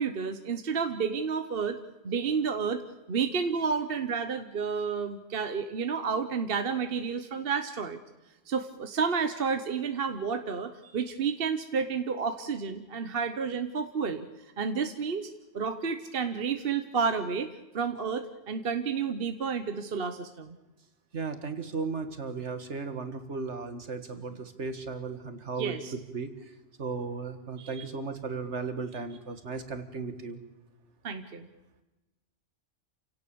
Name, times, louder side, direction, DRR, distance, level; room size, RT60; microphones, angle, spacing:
voice 1, 0.0-1.8 2.0-2.8 3.1-8.0 8.5-14.3 14.6-15.3 15.5-20.6 25.6-25.9 27.6-27.9 31.0-31.5, right 5 dB, 50° right, 8 dB, 1.2 m, -30 dB
voice 2, 21.1-25.8 26.1-26.5 26.8-30.4, right 4 dB, 70° right, 9 dB, 2.0 m, -36 dB
28.5 x 17.5 x 7.0 m, 1.1 s
omnidirectional pair, 1.2 m